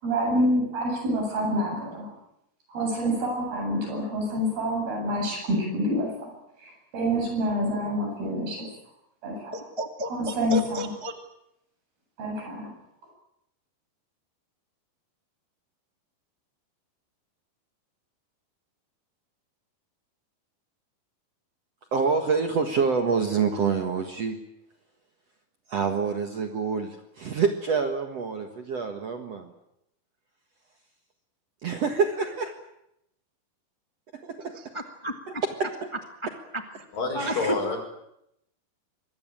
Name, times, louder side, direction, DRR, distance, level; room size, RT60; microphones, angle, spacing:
voice 1, 0.0-2.1 2.7-6.3 6.6-8.7 9.2-9.3 10.1-10.9 12.2-12.7, equal, 80° right, 2 dB, 10.0 m, -27 dB
voice 2, 9.5-11.1 34.5-35.4 36.5-36.9 37.1-37.6, equal, 30° left, 5 dB, 0.5 m, -33 dB
voice 3, 21.9-24.4 25.7-29.5 31.6-32.5 34.1-34.6 35.6-35.7 37.2-37.5, right 5 dB, 50° right, 5 dB, 2.3 m, -27 dB
voice 4, 36.9-37.8, left 4 dB, 65° left, 4 dB, 7.2 m, -28 dB
25.0 x 20.5 x 9.0 m, 0.81 s
omnidirectional pair, 4.3 m